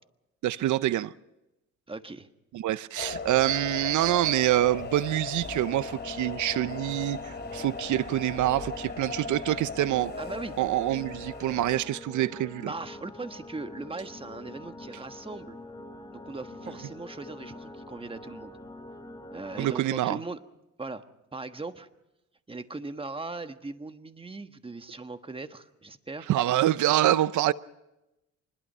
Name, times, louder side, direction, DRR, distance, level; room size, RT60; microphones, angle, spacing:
voice 1, 0.4-1.1 2.5-10.1 10.6-12.7 19.6-20.2 26.3-27.5, right 14 dB, 75° right, 0.7 m, -26 dB
voice 2, 1.9-2.3 10.2-10.6 12.6-15.6 16.1-18.5 19.3-20.4 20.8-21.0 21.3-21.9 22.5-26.3, right 3 dB, 20° right, 1.4 m, -39 dB
sound 1, 3.0-11.8, left 4 dB, 35° left, 3.1 m, -38 dB
sound 2, 5.4-19.8, left 1 dB, 15° left, 1.7 m, -45 dB
25.5 x 21.0 x 5.5 m
cardioid pair, 90°, 30 cm